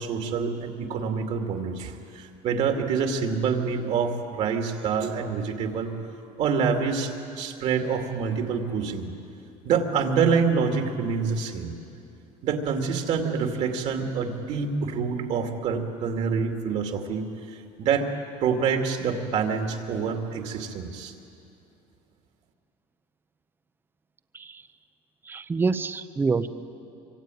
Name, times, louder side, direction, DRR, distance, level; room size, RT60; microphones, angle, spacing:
voice 1, 0.0-5.9 6.4-9.1 9.6-11.7 12.4-18.1 18.4-21.1, right 6 dB, 50° right, 4 dB, 2.5 m, -26 dB
voice 2, 25.3-26.5, right 4 dB, 15° right, 12 dB, 0.7 m, -26 dB
25.5 x 25.0 x 9.2 m, 2.7 s
cardioid pair, 170°, 14 cm